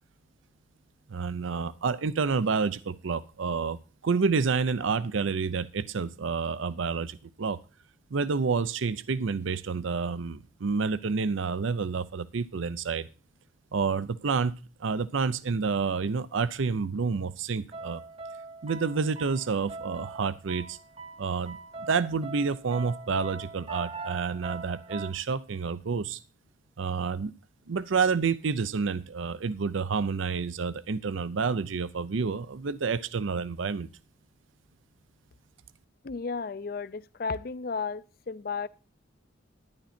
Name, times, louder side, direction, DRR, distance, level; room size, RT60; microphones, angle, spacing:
voice 1, 1.1-7.6 8.1-13.1 13.7-18.0 18.6-20.8 21.2-26.2 26.8-27.3 27.7-33.9, right 5 dB, 80° right, 0.6 m, -29 dB
sound 1, 17.7-25.1, right 3 dB, 30° right, 0.6 m, -42 dB
voice 2, 36.0-38.7, left 4 dB, 50° left, 0.4 m, -33 dB
10.5 x 10.5 x 4.2 m
head